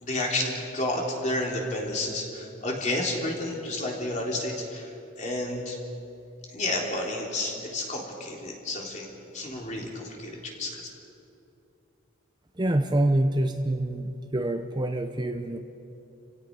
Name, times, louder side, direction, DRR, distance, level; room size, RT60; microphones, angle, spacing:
voice 1, 0.0-4.9 5.2-5.8 6.5-9.1 9.3-10.8, left 1 dB, 35° left, -1 dB, 3.4 m, -31 dB
voice 2, 12.6-15.6, right 1 dB, 20° right, 6 dB, 0.7 m, -26 dB
30.0 x 17.0 x 5.4 m, 2.8 s
head